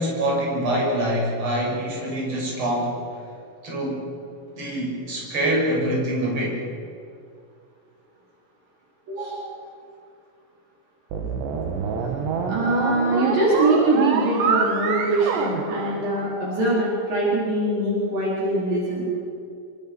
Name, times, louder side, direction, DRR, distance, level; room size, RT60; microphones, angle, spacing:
voice 1, 0.0-3.0 3.6-4.1 4.6-6.6, right 1 dB, 30° right, -2 dB, 7.1 m, -25 dB
voice 2, 9.1-9.5 12.5-19.1, right 2 dB, 55° right, -6 dB, 6.0 m, -23 dB
sound 1, 11.1-16.6, right 5 dB, 85° right, 4.3 m, -26 dB
27.5 x 24.0 x 6.3 m, 2.4 s
omnidirectional pair, 4.9 m